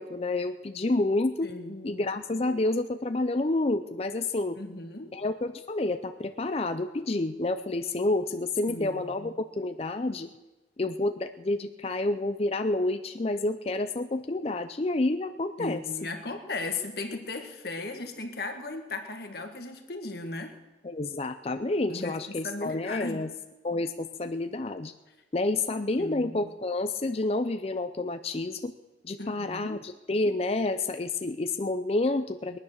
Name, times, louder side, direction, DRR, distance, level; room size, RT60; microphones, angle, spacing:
voice 1, 0.0-1.5 1.8-4.6 5.1-10.3 10.8-15.8 20.8-23.3 23.6-24.9 25.3-28.7 29.0-32.6, left 2 dB, 35° left, 8 dB, 0.5 m, -29 dB
voice 2, 1.4-2.1 4.6-5.2 8.7-9.3 15.6-20.5 21.9-23.2 26.0-26.5 29.2-29.8, left 3 dB, 55° left, 5 dB, 1.6 m, -37 dB
22.0 x 9.6 x 6.5 m, 1.1 s
head